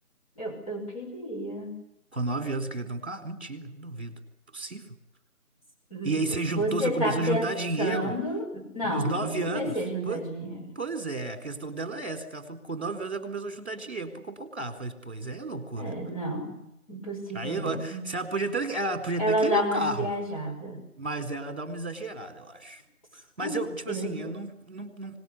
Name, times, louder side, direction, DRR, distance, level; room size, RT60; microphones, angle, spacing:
voice 1, 0.4-1.7 5.9-7.5 7.8-10.7 15.8-18.0 19.2-20.8 23.4-23.6 23.9-24.4, equal, 25° left, -2 dB, 5.5 m, -30 dB
voice 2, 2.1-4.2 4.5-5.0 6.0-8.2 8.8-9.8 10.0-10.3 10.8-15.9 17.3-20.1 21.0-22.8 23.1-25.2, right 2 dB, 45° right, 7 dB, 4.0 m, -32 dB
26.0 x 19.5 x 9.7 m, 0.81 s
figure-of-eight pair, 180°, 44 cm